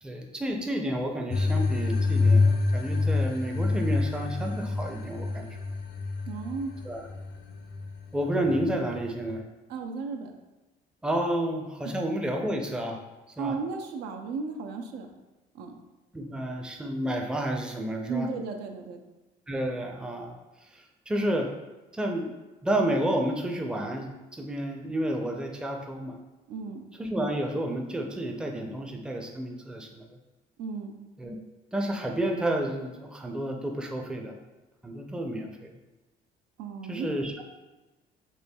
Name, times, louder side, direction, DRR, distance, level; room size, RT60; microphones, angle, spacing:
voice 1, 0.0-5.5 6.8-7.1 8.1-9.4 11.0-13.0 13.4-13.6 16.1-18.3 19.5-20.4 20.7-21.5 21.9-22.3 22.6-26.2 27.0-30.1 31.2-31.4 31.7-34.4 34.8-35.7 36.9-37.5, right 1 dB, 5° right, 2 dB, 0.4 m, -30 dB
sound 1, 1.3-9.4, left 3 dB, 60° left, 0.5 m, -27 dB
voice 2, 6.3-6.7 9.7-10.3 13.4-15.1 15.5-15.7 18.1-19.0 26.5-26.9 30.6-31.0 36.6-37.1, right 4 dB, 85° right, 4 dB, 0.5 m, -34 dB
4.3 x 3.0 x 2.2 m, 1.1 s
cardioid pair, 110°, 17 cm